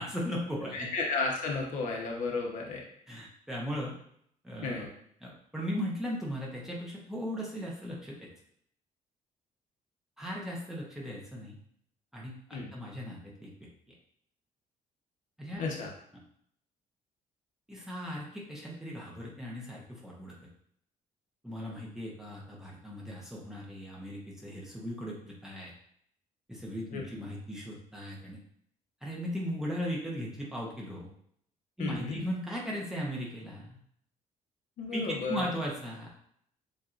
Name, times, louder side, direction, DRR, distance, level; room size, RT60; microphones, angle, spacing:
voice 1, 0.0-0.9 3.1-4.0 4.4-4.9 5.2-8.3 10.2-11.6 12.1-13.9 15.4-15.6 17.7-20.3 21.4-25.7 26.5-28.4 29.0-31.1 31.8-33.8 34.9-36.1, equal, 5° right, -5 dB, 0.8 m, -37 dB
voice 2, 0.7-2.8 4.6-4.9 12.5-12.7 15.6-15.9 26.9-27.0 31.8-32.2 34.8-35.5, left 4 dB, 65° left, -1 dB, 1.0 m, -33 dB
7.2 x 2.6 x 2.5 m, 0.68 s
cardioid pair, 170°, 14 cm